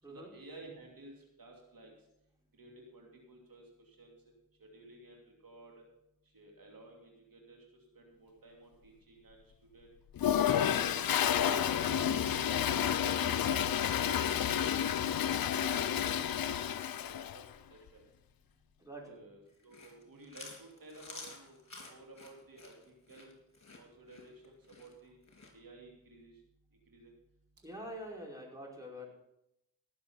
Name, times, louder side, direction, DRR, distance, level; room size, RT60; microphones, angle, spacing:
voice 1, 0.1-1.9 2.6-4.1 4.6-5.8 6.3-9.4 9.7-9.9 11.8-12.4 12.7-13.8 14.2-15.2 15.6-16.8 17.0-17.4 17.7-18.0 19.0-21.6 21.9-23.3 23.8-25.2 25.5-26.4 26.9-27.1, right 2 dB, 80° right, 0 dB, 2.8 m, -54 dB
Toilet flush, 10.2-17.4, left 9 dB, 90° left, 0.6 m, -30 dB
voice 2, 11.4-11.8 18.8-19.2 27.6-29.1, equal, 10° right, -2 dB, 4.9 m, -46 dB
Chewing mastication, 19.5-25.5, left 3 dB, 55° left, 3.7 m, -51 dB
17.5 x 6.9 x 5.8 m, 0.81 s
cardioid pair, 50°, 34 cm